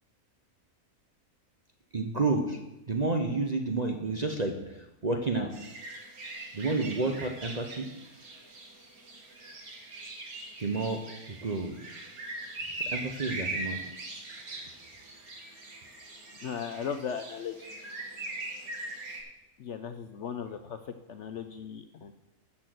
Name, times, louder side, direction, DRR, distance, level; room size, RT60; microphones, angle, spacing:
voice 1, 1.9-2.6 2.9-5.5 6.5-7.9 10.6-11.0 11.3-11.8 12.9-13.8, right 3 dB, 35° right, 4 dB, 0.7 m, -30 dB
sound 1, 5.5-19.2, right 2 dB, 70° right, 2.2 m, -41 dB
voice 2, 16.4-17.7 19.6-22.1, left 7 dB, 60° left, 9 dB, 0.8 m, -37 dB
13.0 x 4.4 x 7.7 m, 0.97 s
omnidirectional pair, 1.6 m